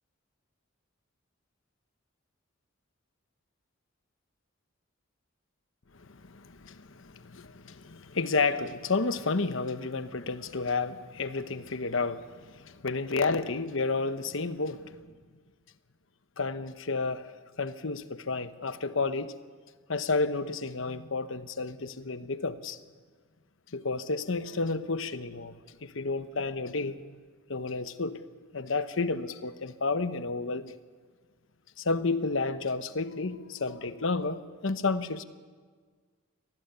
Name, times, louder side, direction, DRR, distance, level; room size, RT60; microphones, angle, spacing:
voice 1, 6.1-15.0 16.4-19.3 19.9-22.8 23.7-25.6 25.8-27.2 27.5-28.2 28.5-30.7 31.8-35.2, left 3 dB, 70° left, 1.0 m, -31 dB
23.5 x 18.5 x 7.0 m
head